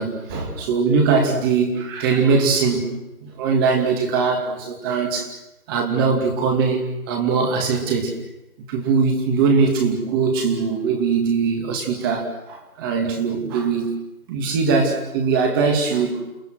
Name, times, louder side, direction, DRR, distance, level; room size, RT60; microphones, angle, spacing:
voice 1, 0.0-2.9 3.2-5.3 5.7-8.2 8.7-13.9 14.3-16.2, right 5 dB, 15° right, 3 dB, 2.5 m, -21 dB
29.5 x 20.0 x 6.4 m, 0.95 s
figure-of-eight pair, 160°, 44 cm